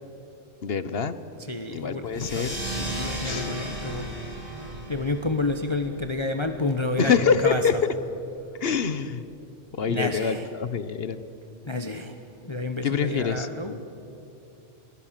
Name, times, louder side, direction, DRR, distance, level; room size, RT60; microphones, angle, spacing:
voice 1, 0.6-1.2 1.7-2.6 3.2-3.5 7.0-7.8 8.6-9.2 9.8-11.2 12.8-13.5, left 6 dB, 55° left, 13 dB, 1.1 m, -25 dB
voice 2, 1.4-2.5 2.8-4.1 4.5-7.8 9.9-10.5 11.6-12.2 12.5-13.8, left 2 dB, 25° left, 6 dB, 1.1 m, -30 dB
sound 1, 2.1-7.2, right 1 dB, 25° right, 4.1 m, -35 dB
27.5 x 20.0 x 7.5 m, 2.6 s
omnidirectional pair, 1.3 m